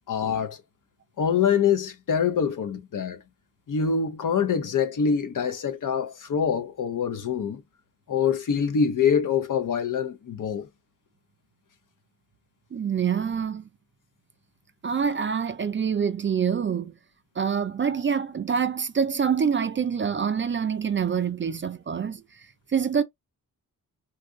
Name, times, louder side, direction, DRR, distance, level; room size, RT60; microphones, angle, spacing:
voice 1, 0.1-0.6 1.2-3.2 3.7-7.6 8.1-10.7, left 7 dB, 60° left, 0.7 m, -25 dB
voice 2, 12.7-13.7 14.8-16.9 17.4-23.0, right 7 dB, 35° right, 0.4 m, -26 dB
2.7 x 2.4 x 3.5 m
wide cardioid pair, 115°, 35 cm